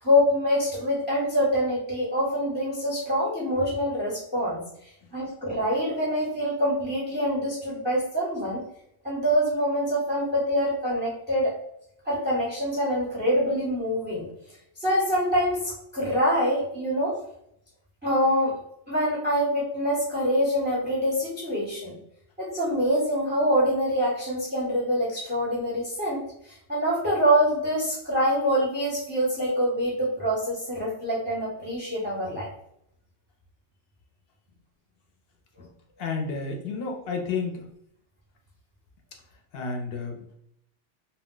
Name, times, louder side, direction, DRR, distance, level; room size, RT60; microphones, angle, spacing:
voice 1, 0.0-8.6 9.0-11.5 12.0-14.2 14.8-17.2 18.0-18.6 18.9-22.0 22.4-32.5, equal, 10° right, -6 dB, 0.5 m, -25 dB
voice 2, 36.0-37.7 39.5-40.3, left 4 dB, 60° left, 2 dB, 0.7 m, -31 dB
2.2 x 2.1 x 3.7 m, 0.74 s
omnidirectional pair, 1.3 m